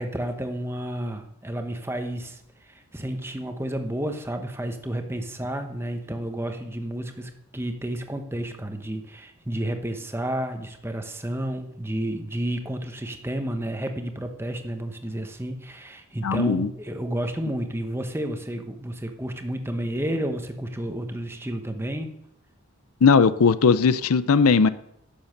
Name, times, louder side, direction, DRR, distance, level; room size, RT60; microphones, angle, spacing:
voice 1, 0.0-22.2, right 1 dB, 10° right, 6 dB, 1.0 m, -31 dB
voice 2, 16.2-16.7 23.0-24.7, left 5 dB, 80° left, 15 dB, 0.5 m, -18 dB
11.0 x 7.1 x 6.6 m, 0.75 s
head